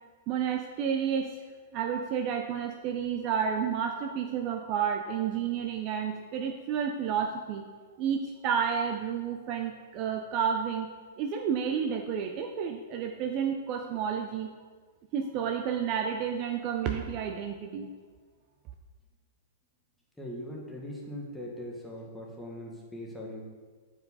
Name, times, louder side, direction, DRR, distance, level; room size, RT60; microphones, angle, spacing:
voice 1, 0.3-1.3 1.7-7.6 8.0-10.9 11.2-14.5 15.1-17.9, right 7 dB, 30° right, 4 dB, 0.4 m, -30 dB
voice 2, 20.2-23.5, left 1 dB, 5° left, -2 dB, 0.8 m, -40 dB
7.5 x 4.7 x 4.0 m, 1.5 s
supercardioid pair, 170°, 0 cm